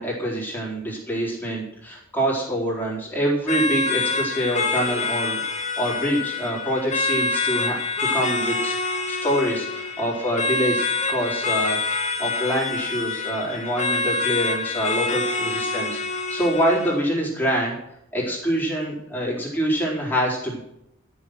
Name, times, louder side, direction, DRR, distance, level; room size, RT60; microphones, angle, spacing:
voice 1, 0.0-8.7 9.1-11.8 12.2-17.8 18.1-20.6, equal, 10° left, -5 dB, 4.3 m, -25 dB
sound 1, 3.5-17.1, left 3 dB, 35° left, 1.5 m, -26 dB
13.0 x 7.3 x 6.4 m, 0.80 s
head